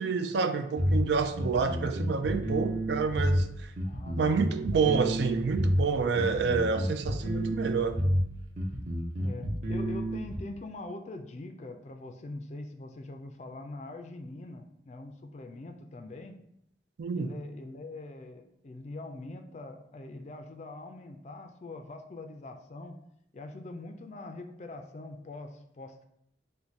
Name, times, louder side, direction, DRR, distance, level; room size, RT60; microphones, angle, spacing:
voice 1, 0.0-3.7 4.2-8.0 17.0-17.3, right 5 dB, 75° right, 8 dB, 0.4 m, -28 dB
sound 1, 0.8-10.4, equal, 40° right, 0.7 m, -29 dB
voice 2, 3.8-4.5 6.3-6.7 9.2-16.3 17.2-23.0 23.3-26.0, left 2 dB, 40° left, 6 dB, 0.3 m, -43 dB
4.5 x 2.2 x 4.0 m, 0.78 s
head